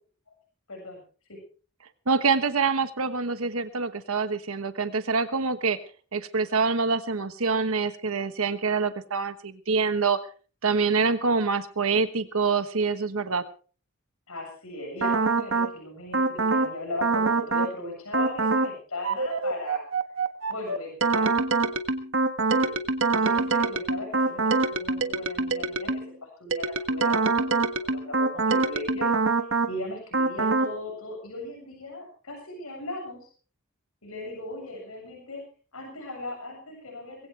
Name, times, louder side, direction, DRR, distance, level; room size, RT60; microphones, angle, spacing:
voice 1, 0.7-1.0 1.3-1.4 14.3-19.8 20.5-21.7 22.5-26.0 26.4-33.3 34.0-35.4 35.7-37.3, left 2 dB, 90° left, 1 dB, 7.5 m, -38 dB
voice 2, 2.1-5.8 6.1-10.2 10.6-13.4, right 4 dB, 80° right, 11 dB, 1.2 m, -25 dB
sound 1, 15.0-15.7 16.1-16.7 17.0-17.7 18.1-18.7 19.0-26.1 26.5-29.7 30.1-30.7, right 3 dB, 65° right, 1.5 m, -25 dB
21.0 x 16.5 x 3.4 m, 0.38 s
head